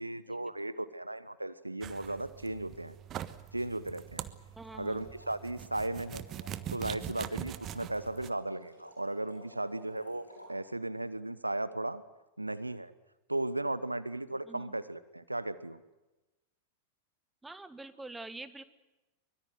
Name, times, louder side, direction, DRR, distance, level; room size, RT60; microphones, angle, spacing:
voice 1, 0.0-2.9 3.5-4.2 4.8-6.2 6.7-12.0 12.4-12.9 13.3-15.8, right 2 dB, 85° right, 16 dB, 1.1 m, -36 dB
sound 1, 1.8-8.3, right 11 dB, 30° right, 1.3 m, -43 dB
voice 2, 4.5-5.0 14.5-14.7 17.4-18.7, right 2 dB, 10° right, 12 dB, 1.6 m, -46 dB
sound 2, 4.6-10.5, left 1 dB, 85° left, 6.0 m, -55 dB
24.0 x 22.5 x 7.8 m, 1.0 s
figure-of-eight pair, 90°, 0 cm